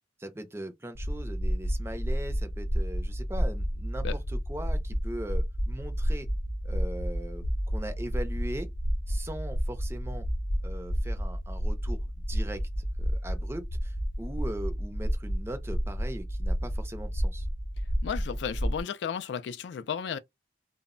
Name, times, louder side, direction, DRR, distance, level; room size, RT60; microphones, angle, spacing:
voice 1, 0.2-6.3 6.6-8.7 9.1-10.3 10.6-17.5, right 1 dB, 15° right, 0.5 m, -40 dB
sound 1, 0.9-18.8, equal, 50° left, 0.7 m, -31 dB
voice 2, 18.0-20.2, left 7 dB, 75° left, 0.3 m, -33 dB
2.1 x 2.0 x 3.6 m
head